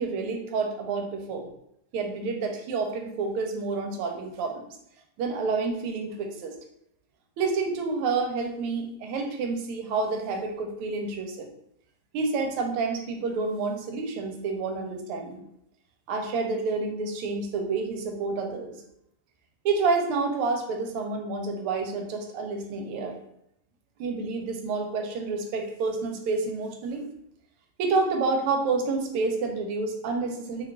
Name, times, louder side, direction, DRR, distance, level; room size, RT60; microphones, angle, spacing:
voice 1, 0.0-1.5 1.9-4.8 5.2-6.5 7.4-11.5 12.1-15.4 16.1-18.8 19.6-23.1 24.0-27.1 27.8-30.7, right 4 dB, 85° right, 3 dB, 1.5 m, -29 dB
3.4 x 2.3 x 3.5 m, 0.74 s
omnidirectional pair, 2.4 m